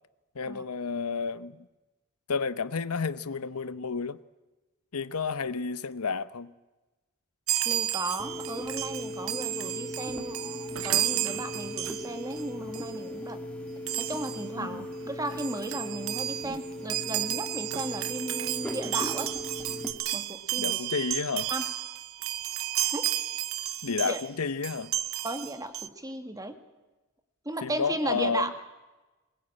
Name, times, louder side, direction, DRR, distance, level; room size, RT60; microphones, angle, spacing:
voice 1, 0.3-1.7 2.3-4.2 4.9-6.5 14.6-14.9 20.6-21.5 23.8-24.9 27.6-28.5, left 5 dB, 85° left, 0.9 m, -31 dB
Chime, 7.5-12.4 12.7-13.0 13.9-14.5 15.0-15.1 15.3-24.3 24.6-25.9, right 13 dB, 65° right, 0.8 m, -32 dB
voice 2, 7.7-13.4 14.0-19.3 20.1-20.8 21.5-21.6 22.9-23.1 24.0-24.2 25.2-26.5 27.5-28.5, right 1 dB, 15° right, 1.9 m, -35 dB
sound 1, 8.2-19.9, left 1 dB, 5° left, 2.4 m, -38 dB
22.0 x 21.5 x 8.9 m
head